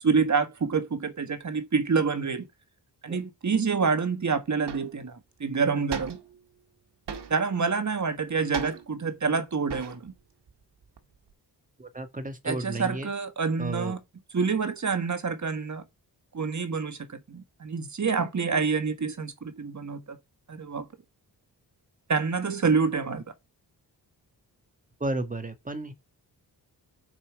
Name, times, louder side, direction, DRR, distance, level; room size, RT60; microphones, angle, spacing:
voice 1, 0.0-2.5 3.0-6.2 7.3-10.1 12.4-14.0 14.3-15.8 16.3-20.2 20.5-20.9 22.1-23.2, right 5 dB, 45° right, 1.5 m, -27 dB
sound 1, 4.0-4.1 4.7-5.0 5.9-6.4 7.1-7.6 8.5-9.1 9.7-10.2 10.5-11.3, right 6 dB, 80° right, 1.6 m, -39 dB
voice 2, 11.8-13.1 13.6-14.0 25.0-25.9, right 2 dB, 20° right, 1.6 m, -33 dB
6.7 x 5.6 x 4.7 m
cardioid pair, 70°, 41 cm